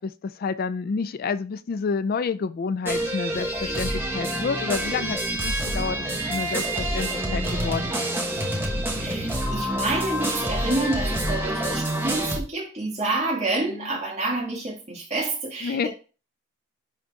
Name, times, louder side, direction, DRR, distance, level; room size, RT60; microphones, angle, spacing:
voice 1, 0.0-5.2 5.4-8.2 13.6-14.0 15.6-15.9, left 5 dB, 45° left, 15 dB, 0.3 m, -29 dB
sound 1, 2.9-12.4, right 1 dB, 10° right, 1.2 m, -27 dB
voice 2, 9.0-15.9, right 2 dB, 30° right, -3 dB, 1.9 m, -28 dB
10.5 x 4.0 x 3.5 m, 0.35 s
head